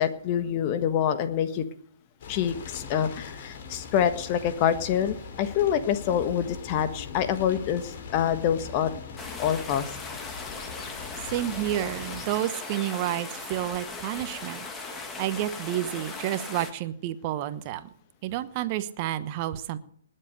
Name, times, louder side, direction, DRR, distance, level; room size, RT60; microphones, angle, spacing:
voice 1, 0.0-1.6 2.3-8.9 9.4-9.9, left 9 dB, 35° left, 11 dB, 1.4 m, -26 dB
sound 1, 2.2-12.3, left 6 dB, 50° left, 3.4 m, -41 dB
sound 2, 9.2-16.7, left 3 dB, 15° left, 1.9 m, -38 dB
voice 2, 11.3-14.7 15.2-17.9 18.2-19.8, right 13 dB, 35° right, 12 dB, 1.1 m, -30 dB
20.0 x 7.7 x 6.7 m, 0.62 s
figure-of-eight pair, 125°, 0 cm